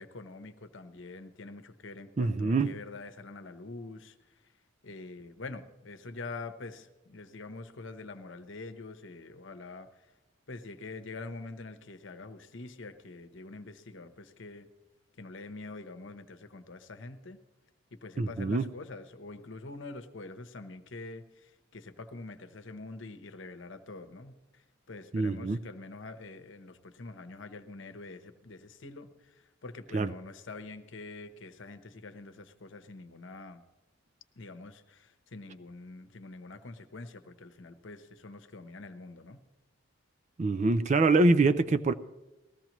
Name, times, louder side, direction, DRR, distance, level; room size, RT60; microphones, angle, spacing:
voice 1, 0.0-4.1 4.8-9.9 10.5-14.7 15.2-17.4 17.9-24.6 24.9-33.6 34.4-39.4, left 3 dB, 65° left, 0.9 m, -45 dB
voice 2, 2.2-2.7 18.2-18.7 25.1-25.6 29.9-30.1 40.4-41.9, right 3 dB, 35° right, 0.4 m, -25 dB
19.5 x 14.5 x 3.0 m
head